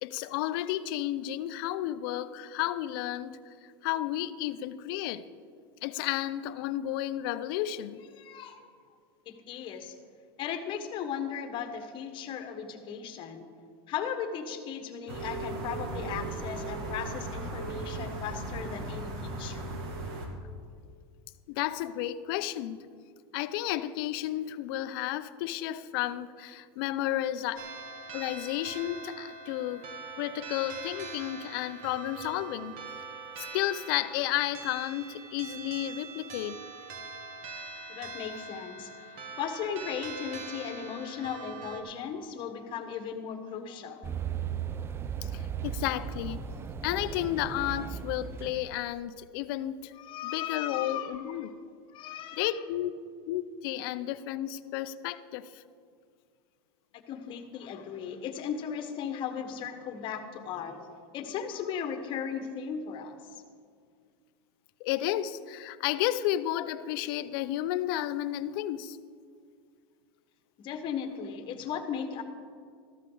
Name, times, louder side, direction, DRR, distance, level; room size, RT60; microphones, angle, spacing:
voice 1, 0.0-3.4 3.8-5.2 5.8-8.0 21.5-22.8 23.3-27.6 28.1-29.9 30.2-32.8 33.4-36.6 45.2-46.4 46.8-49.9 50.2-51.5 52.3-52.9 53.3-55.6 64.8-69.0, left 13 dB, 60° left, 0.6 m, -32 dB
voice 2, 8.1-8.6 9.3-9.9 10.4-13.4 13.9-19.7 38.0-44.1 50.0-51.5 51.9-52.5 57.1-60.9 61.1-63.4 70.6-72.2, left 7 dB, 40° left, 1.3 m, -37 dB
sound 1, 15.1-20.3, right 2 dB, 70° right, 2.2 m, -37 dB
sound 2, 27.6-41.8, right 4 dB, 50° right, 1.6 m, -43 dB
sound 3, 44.0-48.9, right 8 dB, 20° right, 0.4 m, -36 dB
14.0 x 13.0 x 3.9 m
supercardioid pair, 130°, 13 cm